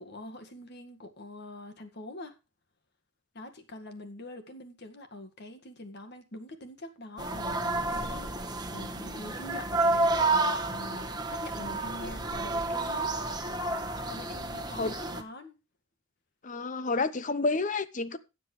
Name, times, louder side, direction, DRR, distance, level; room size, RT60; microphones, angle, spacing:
voice 1, 0.0-2.4 3.3-13.1 14.1-15.6, left 1 dB, 55° left, 1.9 m, -44 dB
sound 1, 7.2-15.2, right 2 dB, 20° right, 1.3 m, -30 dB
voice 2, 16.4-18.2, left 3 dB, 40° left, 0.8 m, -29 dB
17.0 x 7.8 x 3.3 m
head